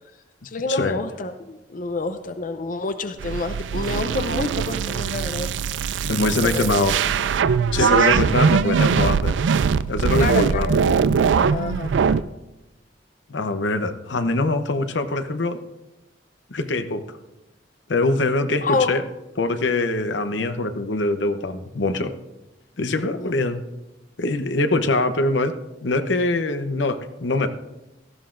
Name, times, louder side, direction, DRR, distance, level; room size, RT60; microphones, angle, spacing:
voice 1, 0.4-5.5 6.3-6.7 7.8-8.3 10.2-10.8 11.3-11.9 18.6-19.0 23.2-23.3, left 3 dB, 50° left, 9 dB, 0.6 m, -28 dB
sound 1, 3.2-12.2, right 6 dB, 85° right, 0.4 m, -21 dB
voice 2, 6.0-7.0 7.7-9.3 9.9-10.7 13.3-15.6 16.5-17.0 17.9-19.0 19.4-22.1 22.8-23.6 24.2-25.5 25.8-27.5, left 2 dB, 85° left, 9 dB, 0.8 m, -23 dB
17.0 x 13.0 x 2.5 m, 0.99 s
head